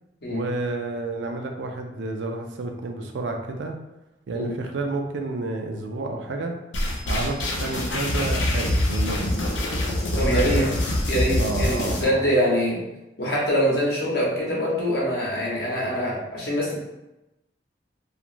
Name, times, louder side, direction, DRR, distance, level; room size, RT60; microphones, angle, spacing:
voice 1, 0.3-3.8 4.3-6.6 7.1-9.4 10.1-10.7 11.4-12.2, right 2 dB, 80° right, 3 dB, 0.4 m, -30 dB
sound 1, 6.7-12.0, left 1 dB, 85° left, 0.5 m, -25 dB
voice 2, 10.2-10.6 11.1-12.8 13.2-16.8, equal, 55° left, -5 dB, 0.9 m, -24 dB
3.0 x 2.4 x 2.5 m, 0.95 s
head